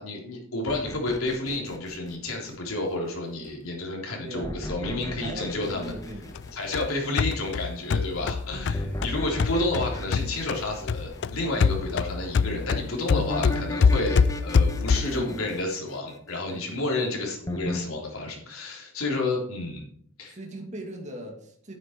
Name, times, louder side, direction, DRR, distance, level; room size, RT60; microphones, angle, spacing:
voice 1, 0.0-5.9 6.5-19.8 20.2-20.4, left 2 dB, 80° left, -1 dB, 3.6 m, -30 dB
sound 1, 0.7-2.9 4.4-7.1 8.7-11.6 13.1-16.5 17.5-17.8, left 1 dB, 15° left, 1.0 m, -36 dB
sound 2, 3.4-3.8 5.7-6.5 8.0-9.3 10.3-12.5 13.2-14.4, left 1 dB, 40° left, 2.0 m, -45 dB
voice 2, 4.2-4.6 4.8-6.5 8.8-9.0 15.0-15.4 16.5-16.6 20.3-21.7, right 1 dB, 35° right, 1 dB, 2.2 m, -39 dB
sound 3, 6.4-10.6 10.9-15.3, left 5 dB, 55° left, 0.4 m, -24 dB
9.5 x 9.1 x 4.6 m, 0.64 s
head